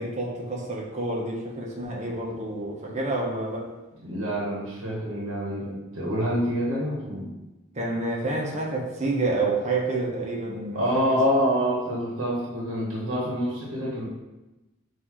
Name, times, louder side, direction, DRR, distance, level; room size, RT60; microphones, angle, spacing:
voice 1, 0.0-3.7 7.8-10.8 11.1-11.2, right 2 dB, 35° right, -2 dB, 0.7 m, -28 dB
voice 2, 4.0-7.3 10.7-14.1, equal, 70° right, -4 dB, 0.9 m, -26 dB
5.8 x 2.5 x 2.9 m, 1.0 s
head